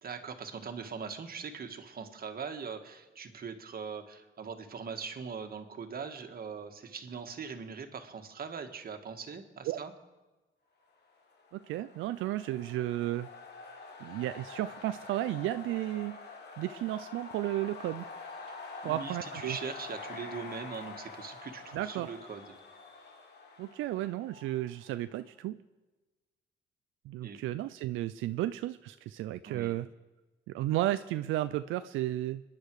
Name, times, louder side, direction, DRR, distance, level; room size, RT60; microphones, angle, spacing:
voice 1, 0.0-9.9 18.8-22.6 27.2-27.4 29.4-29.8, right 6 dB, 50° right, 6 dB, 1.8 m, -41 dB
sound 1, 11.2-25.0, left 4 dB, 55° left, 2.6 m, -46 dB
voice 2, 11.5-13.3 14.0-16.2 16.6-18.0 18.8-19.6 21.7-22.1 23.6-25.6 27.1-29.9 30.5-32.4, right 14 dB, 90° right, 11 dB, 0.5 m, -33 dB
26.0 x 10.5 x 4.8 m, 1.2 s
cardioid pair, 90°, 20 cm